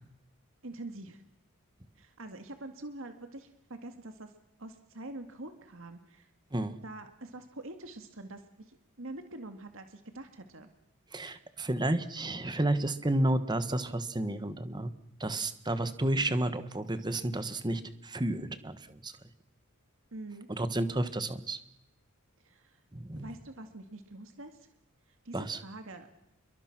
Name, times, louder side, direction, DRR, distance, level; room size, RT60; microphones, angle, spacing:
voice 1, 0.6-1.2 2.0-4.3 4.6-6.3 6.8-10.7 20.1-20.5 22.4-22.8 23.2-24.7 25.2-26.1, right 2 dB, 60° right, 7 dB, 2.1 m, -45 dB
voice 2, 11.1-14.9 15.2-19.1 20.5-21.6 22.9-23.3 25.3-25.6, right 1 dB, 20° right, 11 dB, 1.3 m, -31 dB
29.0 x 22.5 x 6.1 m, 0.86 s
head